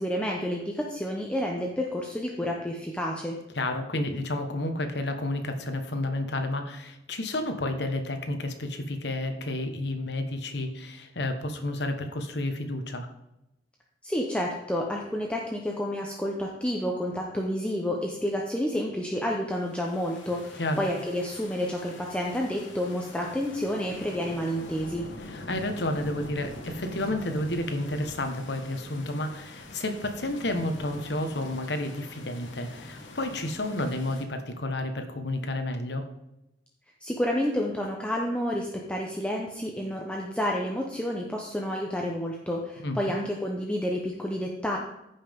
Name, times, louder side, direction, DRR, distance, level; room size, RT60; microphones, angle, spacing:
voice 1, 0.0-3.4 14.0-25.1 37.0-44.8, equal, 5° left, -1 dB, 0.8 m, -30 dB
voice 2, 3.5-13.1 20.6-20.8 25.3-36.0 42.8-43.0, left 1 dB, 65° left, 6 dB, 1.2 m, -31 dB
sound 1, 19.6-34.2, left 1 dB, 90° left, 1.4 m, -44 dB
14.5 x 5.7 x 3.6 m, 0.90 s
head